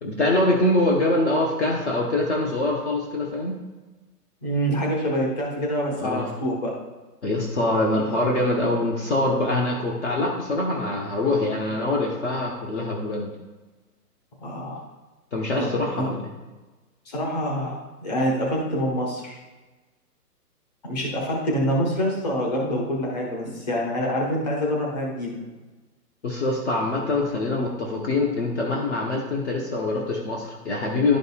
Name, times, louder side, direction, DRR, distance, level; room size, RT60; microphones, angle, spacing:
voice 1, 0.0-3.6 6.0-6.3 7.2-13.3 15.3-16.3 26.2-31.2, left 2 dB, 45° left, -1 dB, 1.0 m, -24 dB
voice 2, 4.4-6.7 14.4-14.8 15.6-15.7 16.0-16.1 17.1-17.8 18.0-19.4 20.8-25.3, equal, 25° left, -2 dB, 1.2 m, -26 dB
11.5 x 5.2 x 2.3 m, 1.2 s
hypercardioid pair, 175°, 48 cm